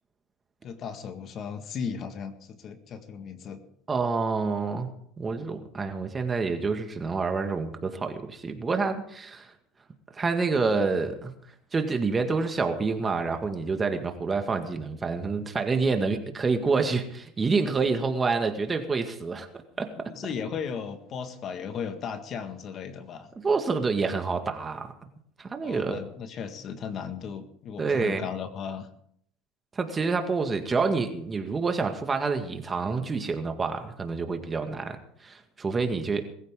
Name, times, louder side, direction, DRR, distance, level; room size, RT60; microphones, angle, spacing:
voice 1, 0.6-3.6 20.0-23.3 25.6-28.9, left 6 dB, 40° left, 8 dB, 1.9 m, -36 dB
voice 2, 3.9-4.9 5.2-9.5 10.1-11.3 11.7-19.5 19.8-20.1 23.4-24.9 25.4-26.0 27.8-28.3 29.8-36.3, right 4 dB, 20° right, 6 dB, 2.0 m, -27 dB
21.5 x 15.0 x 3.9 m, 0.65 s
supercardioid pair, 120°, 0 cm